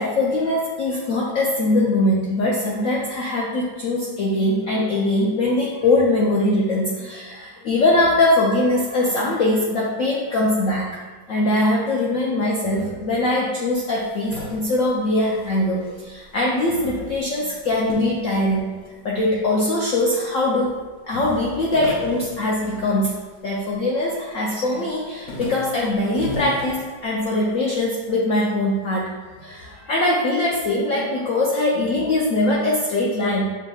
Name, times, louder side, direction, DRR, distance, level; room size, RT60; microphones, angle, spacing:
voice 1, 0.0-11.0 11.3-18.6 19.0-20.7 21.0-23.2 23.4-29.1 29.4-33.4, left 1 dB, 75° left, -4 dB, 0.7 m, -21 dB
sound 1, 13.7-16.4 16.7-19.2 19.8-20.5 20.7-20.8 21.1-23.7 24.1-24.5 24.9-27.5, left 2 dB, 55° left, 1.1 m, -37 dB
7.4 x 2.8 x 2.3 m, 1.4 s
omnidirectional pair, 2.0 m